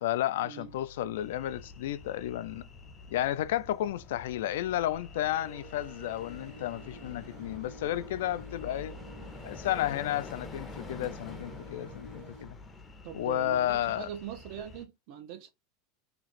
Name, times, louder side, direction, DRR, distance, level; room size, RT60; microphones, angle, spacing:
voice 1, 0.0-2.6 3.1-8.9 9.4-12.6 13.1-14.1, left 13 dB, 75° left, 0.3 m, -32 dB
sound 1, 0.6-12.0, left 3 dB, 55° left, 0.8 m, -54 dB
sound 2, 1.1-14.8, left 3 dB, 10° left, 0.5 m, -47 dB
sound 3, 5.2-12.5, right 2 dB, 70° right, 1.1 m, -51 dB
voice 2, 13.0-15.5, right 9 dB, 45° right, 0.4 m, -42 dB
2.9 x 2.5 x 4.1 m
supercardioid pair, 175°, 0 cm